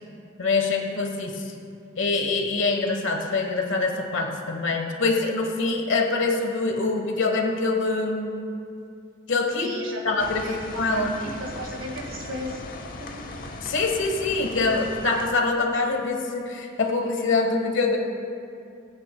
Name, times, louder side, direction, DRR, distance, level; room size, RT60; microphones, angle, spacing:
voice 1, 0.4-1.4 2.0-8.4 9.3-9.7 10.0-11.2 13.6-18.0, left 3 dB, 70° left, 3 dB, 1.1 m, -24 dB
voice 2, 9.6-10.0 10.4-12.6 13.0-13.3, equal, 70° right, 0 dB, 1.9 m, -36 dB
sound 1, 10.2-15.3, left 2 dB, 45° left, 0.8 m, -38 dB
18.5 x 9.2 x 2.2 m, 2.5 s
head